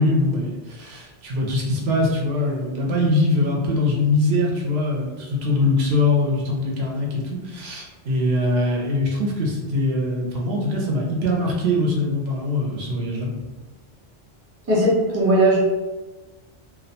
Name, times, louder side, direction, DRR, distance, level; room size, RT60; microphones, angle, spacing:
voice 1, 0.0-13.3, left 2 dB, 70° right, -2 dB, 0.8 m, -22 dB
voice 2, 14.7-15.6, right 1 dB, 25° right, -6 dB, 0.3 m, -18 dB
2.2 x 2.1 x 2.7 m, 1.2 s
omnidirectional pair, 1.1 m